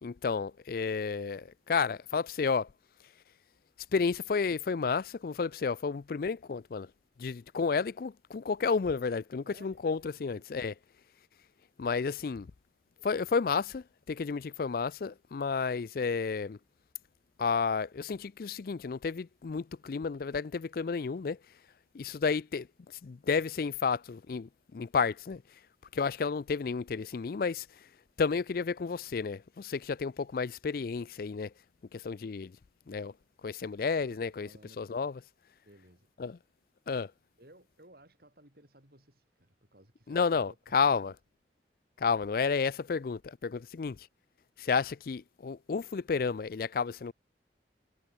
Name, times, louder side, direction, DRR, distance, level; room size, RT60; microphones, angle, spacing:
voice 1, 0.0-2.7 3.9-6.9 7.2-10.7 11.8-12.5 13.0-16.6 17.4-21.4 21.9-22.7 23.0-25.4 25.9-27.7 28.2-31.5 31.9-32.5 32.9-33.1 33.4-34.5 34.8-35.2 36.2-36.4 36.9-37.1 40.1-41.1 42.0-44.0 44.6-47.1, left 5 dB, 55° left, 0.4 m, -31 dB
voice 2, 9.4-9.8 10.1-10.5 34.0-35.1 35.6-36.1 37.4-41.1, right 1 dB, 55° right, 5.6 m, -59 dB
head